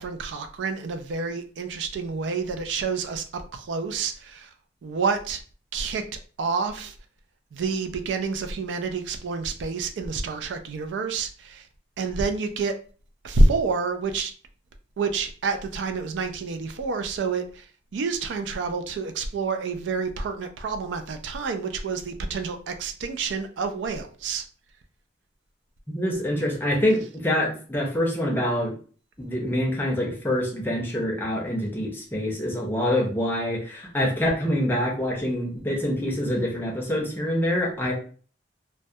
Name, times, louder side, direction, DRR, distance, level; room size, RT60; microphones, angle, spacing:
voice 1, 0.0-4.5 4.8-5.4 5.7-6.1 6.4-6.9 7.5-11.6 12.0-12.8 13.2-14.3 15.0-17.7 17.9-24.4, right 3 dB, 90° right, 7 dB, 0.4 m, -28 dB
voice 2, 25.9-28.7 29.2-37.9, left 1 dB, 10° left, -1 dB, 0.6 m, -25 dB
2.2 x 2.1 x 2.6 m, 0.41 s
head